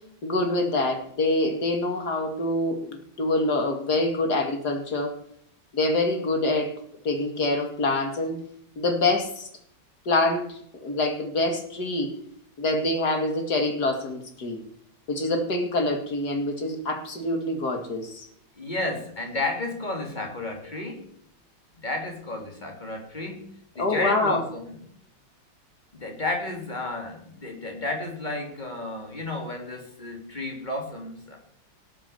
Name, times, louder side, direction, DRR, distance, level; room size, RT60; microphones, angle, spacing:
voice 1, 0.2-5.1 5.7-6.7 7.0-8.4 8.8-9.5 10.1-12.1 12.6-14.6 15.1-18.3 23.8-24.4, left 2 dB, 60° left, 4 dB, 2.7 m, -25 dB
voice 2, 18.6-21.1 21.8-23.5 23.8-24.8 26.0-31.4, left 2 dB, 25° left, 1 dB, 3.3 m, -32 dB
18.0 x 7.7 x 6.9 m, 0.68 s
omnidirectional pair, 1.9 m